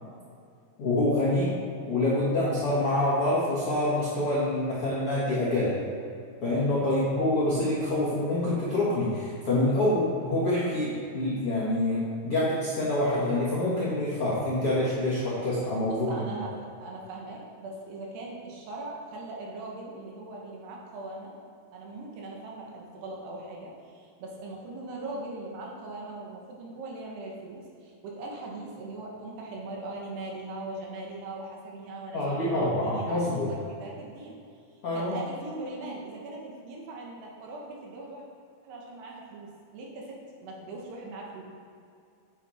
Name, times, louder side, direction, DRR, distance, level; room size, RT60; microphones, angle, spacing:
voice 1, 0.8-1.5 1.9-5.8 6.4-16.1 32.1-33.5 34.8-35.2, left 1 dB, 70° left, -9 dB, 1.3 m, -26 dB
voice 2, 15.8-16.5 16.8-21.3 21.7-34.4 34.9-38.2 38.6-41.4, right 2 dB, 70° right, -1 dB, 2.9 m, -40 dB
10.0 x 7.2 x 4.2 m, 2.4 s
omnidirectional pair, 5.6 m